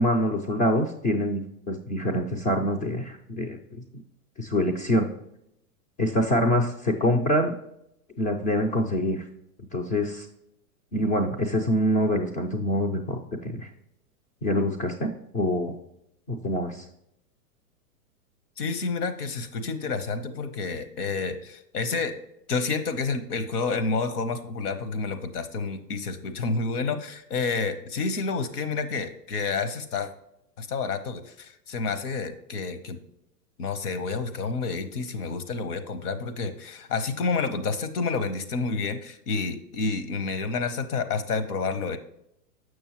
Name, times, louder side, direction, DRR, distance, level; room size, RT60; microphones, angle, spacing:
voice 1, 0.0-3.8 4.4-5.1 6.0-7.5 8.2-9.2 9.7-10.3 10.9-13.7 14.4-15.7 16.3-16.8, equal, 20° left, 0 dB, 0.4 m, -25 dB
voice 2, 18.6-22.2 22.5-30.1 30.6-33.0 33.6-42.0, left 4 dB, 75° left, 11 dB, 1.0 m, -29 dB
6.6 x 6.3 x 3.0 m, 0.78 s
hypercardioid pair, 130°, 46 cm